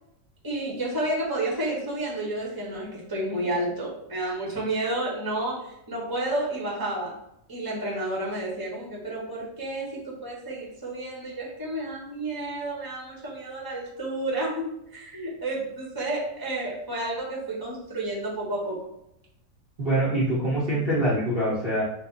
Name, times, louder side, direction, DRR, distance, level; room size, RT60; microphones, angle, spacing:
voice 1, 0.4-7.2 7.5-18.8 21.1-21.2, right 1 dB, 15° right, -4 dB, 1.3 m, -31 dB
voice 2, 19.8-21.8, right 1 dB, 45° right, -7 dB, 1.2 m, -24 dB
4.6 x 2.6 x 4.0 m, 0.79 s
omnidirectional pair, 1.6 m